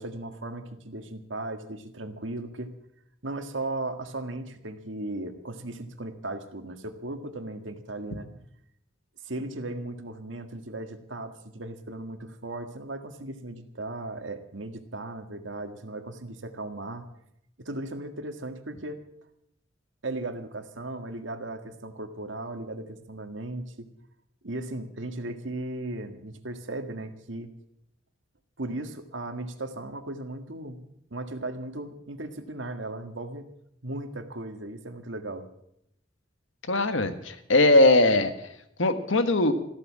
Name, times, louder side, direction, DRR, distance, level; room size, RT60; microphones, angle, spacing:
voice 1, 0.0-2.7 3.2-8.3 9.2-17.0 17.6-19.0 20.0-23.9 24.4-27.5 28.6-30.8 31.1-33.5 33.8-35.5, right 2 dB, 75° right, 7 dB, 1.8 m, -36 dB
voice 2, 36.7-38.3 38.8-39.5, left 2 dB, 85° left, 9 dB, 1.6 m, -20 dB
14.5 x 13.0 x 7.4 m, 0.76 s
head